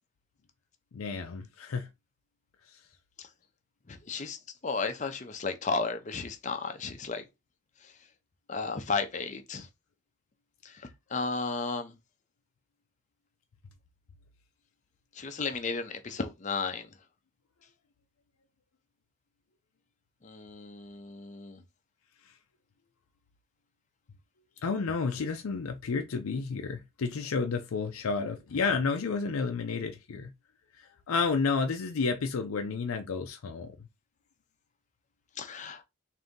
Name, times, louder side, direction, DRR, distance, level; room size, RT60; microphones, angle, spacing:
voice 1, 0.9-1.9 2.7-2.8 22.3-22.4 24.6-30.3 30.8-33.8, left 4 dB, 80° left, 0.5 m, -31 dB
voice 2, 3.9-4.4 4.6-7.3 8.5-9.7 10.6-10.8 11.1-11.9 15.2-16.9 20.2-21.6 35.4-35.8, left 4 dB, 35° left, 0.5 m, -34 dB
3.9 x 2.7 x 3.6 m
head